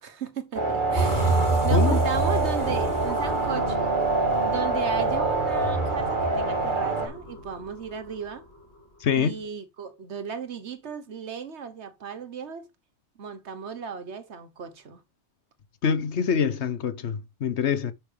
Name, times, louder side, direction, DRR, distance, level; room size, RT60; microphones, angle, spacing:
voice 1, 0.0-4.0 4.4-8.4 9.2-12.7 13.2-15.0, right 6 dB, 75° right, 1.4 m, -35 dB
sound 1, 0.5-7.1, right 3 dB, 45° right, 1.9 m, -26 dB
sound 2, 0.9-8.0, right 2 dB, 15° left, 3.5 m, -29 dB
voice 2, 9.0-9.4 15.8-17.9, left 7 dB, 75° left, 1.2 m, -25 dB
8.5 x 6.2 x 3.4 m
omnidirectional pair, 1.2 m